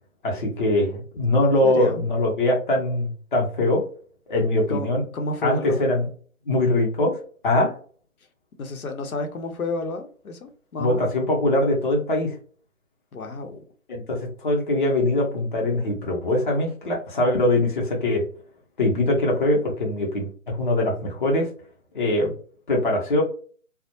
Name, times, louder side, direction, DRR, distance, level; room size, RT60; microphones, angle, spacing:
voice 1, 0.2-3.8 4.3-5.0 5.4-6.1 6.5-7.7 10.8-12.4 13.9-18.2 18.8-21.5 21.9-22.3 22.7-23.2, left 1 dB, 35° left, -1 dB, 0.6 m, -22 dB
voice 2, 1.6-2.0 4.7-4.9 5.1-5.8 8.6-11.1 13.1-13.6, left 2 dB, 85° left, 6 dB, 0.7 m, -30 dB
2.2 x 2.0 x 2.8 m, 0.43 s
figure-of-eight pair, 155°, 42 cm